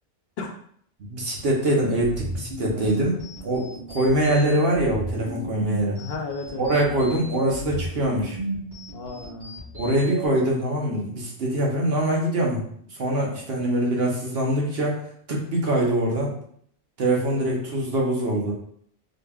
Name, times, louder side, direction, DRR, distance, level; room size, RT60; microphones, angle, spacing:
voice 1, 1.0-6.0 6.6-8.4 9.7-12.6 12.9-15.0 15.3-16.3 17.0-18.5, right 1 dB, 60° right, -2 dB, 1.1 m, -23 dB
sound 1, 2.0-10.3, right 1 dB, 75° right, 1.9 m, -34 dB
voice 2, 6.0-6.7 8.9-9.5 17.3-17.7, left 4 dB, 65° left, 3 dB, 0.8 m, -34 dB
4.0 x 3.4 x 2.3 m, 0.64 s
omnidirectional pair, 1.2 m